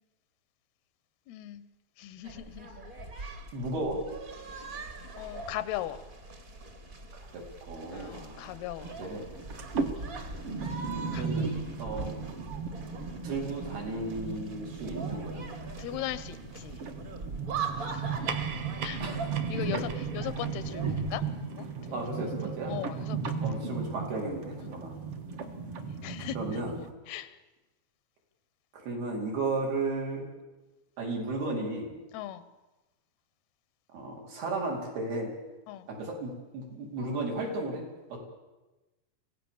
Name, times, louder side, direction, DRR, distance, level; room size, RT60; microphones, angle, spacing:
voice 1, 1.3-1.6 2.0-2.7 5.2-6.0 7.9-9.0 11.1-11.3 15.8-16.8 17.9-18.0 18.8-19.0 19.5-19.8 20.1-21.7 22.7-23.4 24.6-24.8 26.0-26.4 27.1-27.4 32.1-32.5 35.7-35.9, left 13 dB, 90° left, 15 dB, 2.9 m, -38 dB
sound 1, 2.2-21.3, right 3 dB, 35° right, 1.6 m, -42 dB
voice 2, 3.5-4.0 7.1-8.6 9.0-9.3 11.1-11.5 11.8-12.1 13.2-15.4 19.0-19.3 19.7-19.8 21.9-22.8 23.4-24.9 26.4-26.8 28.7-30.2 31.0-31.9 33.9-35.3 35.9-37.8 38.1-38.2, right 2 dB, 80° right, -1 dB, 6.3 m, -34 dB
sound 2, 8.8-26.9, right 5 dB, 50° right, 1.9 m, -36 dB
sound 3, 18.0-22.9, right 7 dB, 65° right, 2.3 m, -43 dB
24.5 x 17.0 x 7.2 m, 1.1 s
omnidirectional pair, 4.4 m